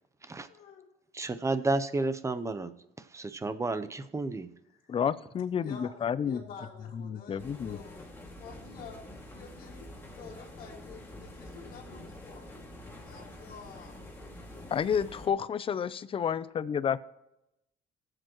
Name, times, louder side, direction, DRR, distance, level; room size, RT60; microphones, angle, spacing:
voice 1, 0.5-0.8 4.7-4.8 5.6-5.9 6.2-8.0 8.3-9.0 9.3-9.9 10.1-12.6 12.9-14.0, left 5 dB, 55° left, -4 dB, 2.3 m, -49 dB
voice 2, 1.1-2.7 3.1-4.5, right 2 dB, 15° right, 11 dB, 0.7 m, -31 dB
voice 3, 4.9-6.4 6.9-7.8 14.7-17.1, left 7 dB, 35° left, 16 dB, 0.5 m, -30 dB
sound 1, 7.4-15.3, left 1 dB, 15° left, 2.1 m, -47 dB
19.0 x 7.9 x 3.0 m, 0.89 s
cardioid pair, 110°, 17 cm